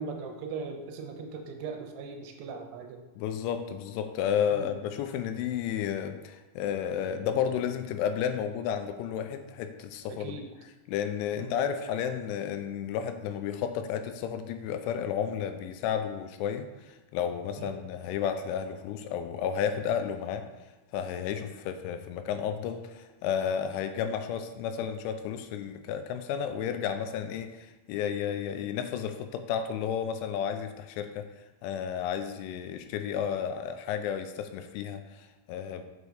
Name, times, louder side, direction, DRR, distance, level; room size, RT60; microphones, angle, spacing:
voice 1, 0.0-3.0 4.5-4.7 10.1-10.5 11.4-11.5 17.6-17.8, right 4 dB, 85° right, 3 dB, 3.1 m, -39 dB
voice 2, 3.2-10.4 10.9-20.4 20.9-31.3 31.6-35.9, left 8 dB, 85° left, 8 dB, 2.9 m, -32 dB
6.9 x 5.1 x 4.8 m, 1.1 s
omnidirectional pair, 5.5 m